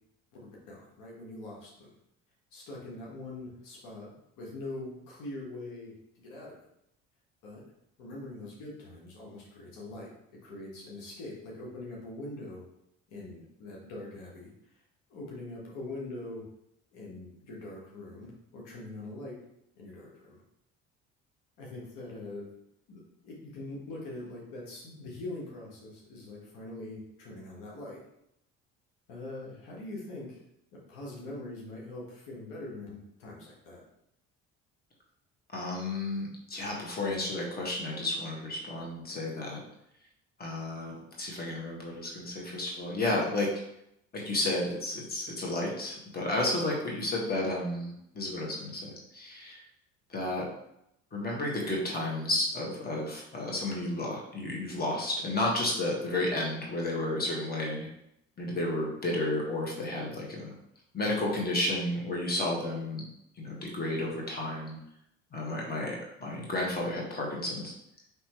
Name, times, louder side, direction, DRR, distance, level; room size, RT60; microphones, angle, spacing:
voice 1, 0.4-1.9 2.5-6.6 7.4-7.6 8.0-10.2 10.4-12.6 13.1-14.5 15.1-16.4 16.9-19.4 19.7-20.4 21.6-22.5 22.9-28.0 29.1-30.4 30.7-33.8, left 2 dB, 75° left, -3 dB, 1.4 m, -43 dB
voice 2, 35.5-39.6 40.4-43.5 44.1-49.6 50.1-50.4 51.1-57.9 58.4-60.5 60.9-63.0 63.4-64.8 65.3-67.7, left 1 dB, 30° left, -2 dB, 1.5 m, -32 dB
5.2 x 3.1 x 3.0 m, 0.78 s
supercardioid pair, 70°, 31 cm